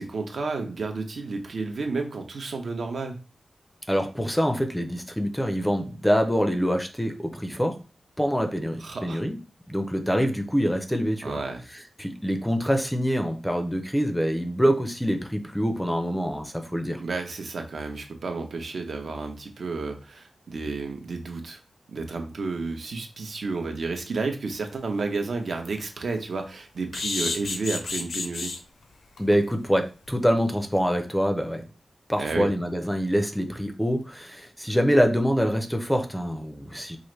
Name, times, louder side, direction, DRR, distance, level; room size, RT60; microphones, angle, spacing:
voice 1, 0.0-3.2 8.8-9.2 11.2-11.6 17.0-21.6 21.9-28.5 32.2-32.5, right 3 dB, 70° right, 4 dB, 0.7 m, -31 dB
voice 2, 3.9-7.8 8.2-9.4 9.7-11.4 12.0-17.0 29.2-31.6 32.1-37.0, equal, 5° left, 5 dB, 0.4 m, -25 dB
sound 1, 24.6-24.7 25.2-25.3 25.6-25.8 26.9-28.6 29.2-29.3 29.6-29.7 30.1-30.2, left 4 dB, 90° left, 0.6 m, -30 dB
4.7 x 2.5 x 3.1 m, 0.35 s
wide cardioid pair, 145°, 0 cm